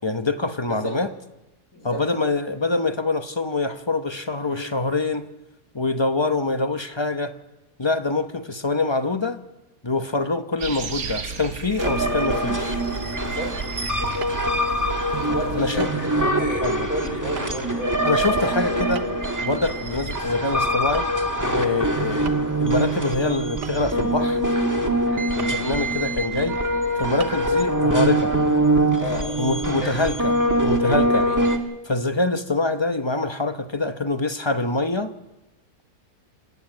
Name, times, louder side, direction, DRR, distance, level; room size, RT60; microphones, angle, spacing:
voice 1, 0.0-1.1 1.8-5.3 5.7-7.4 7.8-9.4 9.8-12.8 15.6-15.9 16.2-16.9 18.0-19.1 19.4-21.1 21.5-22.3 22.6-24.4 25.3-26.6 27.0-28.3 29.4-30.3 30.6-31.2 31.8-35.1, left 3 dB, 25° left, 8 dB, 0.7 m, -25 dB
voice 2, 1.7-2.0 4.5-4.7 13.2-13.5 15.1-18.0 21.6-21.8 25.0-25.3 29.0-29.2 29.8-30.0 31.1-31.4, equal, 50° left, 0 dB, 4.1 m, -32 dB
sound 1, 10.6-15.7, right 5 dB, 60° right, 1.8 m, -35 dB
sound 2, 11.8-31.6, right 1 dB, 10° right, 1.5 m, -23 dB
sound 3, 14.2-14.4 15.8-16.0 16.3-16.4 17.4-17.5 18.9-19.3 20.9-21.2 21.5-21.6 22.2-22.6 23.6-24.1 25.4-25.6 26.2-26.3 27.2-27.3, right 7 dB, 90° right, 1.8 m, -38 dB
27.5 x 11.0 x 8.9 m, 0.98 s
omnidirectional pair, 1.8 m